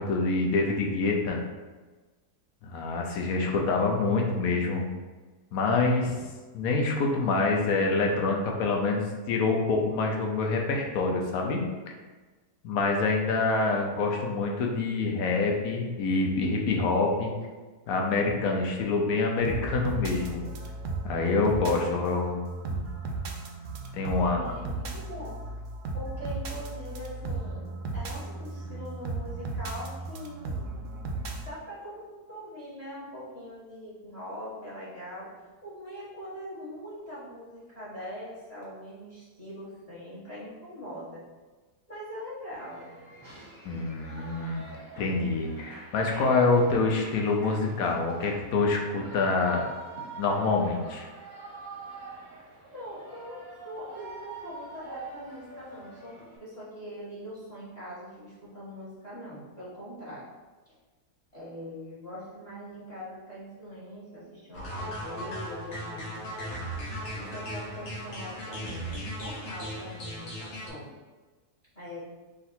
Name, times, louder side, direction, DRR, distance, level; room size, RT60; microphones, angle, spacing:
voice 1, 0.0-1.4 2.6-4.8 5.5-6.2 6.5-11.6 12.6-17.3 17.9-20.5 21.0-22.4 22.7-22.8 23.9-24.4 43.6-44.6 45.0-49.6 50.2-51.1, left 3 dB, 70° left, 1 dB, 1.1 m, -26 dB
sound 1, 19.4-31.5, right 3 dB, 65° right, 0.8 m, -35 dB
voice 2, 24.2-25.4 25.9-30.8 31.4-35.3 35.6-41.2 41.9-42.9 52.7-60.3 61.3-66.5 67.1-70.9 71.7-72.0, equal, 25° left, -9 dB, 1.2 m, -42 dB
Shout / Cheering, 42.5-56.4, right 3 dB, 15° right, 0.8 m, -46 dB
sound 2, 64.5-70.7, equal, 50° left, 1.2 m, -37 dB
3.8 x 2.5 x 4.2 m, 1.3 s
omnidirectional pair, 1.7 m